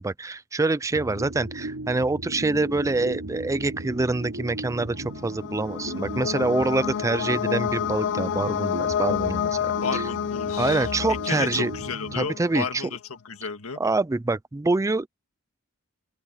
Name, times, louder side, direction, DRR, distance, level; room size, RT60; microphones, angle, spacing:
voice 1, 0.0-10.0 10.6-11.7 12.1-12.8 13.8-15.1, right 3 dB, 15° right, 0.4 m, -26 dB
sound 1, 0.9-12.8, right 1 dB, 80° right, 2.8 m, -37 dB
sound 2, 1.9-11.8, right 1 dB, 35° right, 2.2 m, -48 dB
sound 3, 5.0-12.7, left 8 dB, 55° left, 0.4 m, -29 dB
voice 2, 9.8-13.0 13.2-13.8, left 5 dB, 70° left, 1.8 m, -32 dB
open air
head